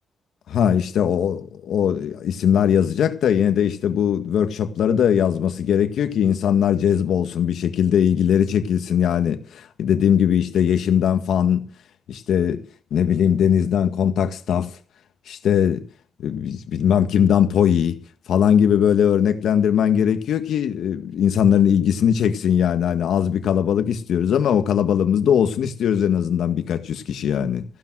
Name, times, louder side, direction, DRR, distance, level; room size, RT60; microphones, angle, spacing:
voice 1, 0.5-11.7 12.1-12.6 12.9-14.7 15.3-15.8 16.2-18.0 18.3-27.6, left 8 dB, 85° left, 1.8 m, -20 dB
15.0 x 12.5 x 6.4 m
wide cardioid pair, 170°, 0 cm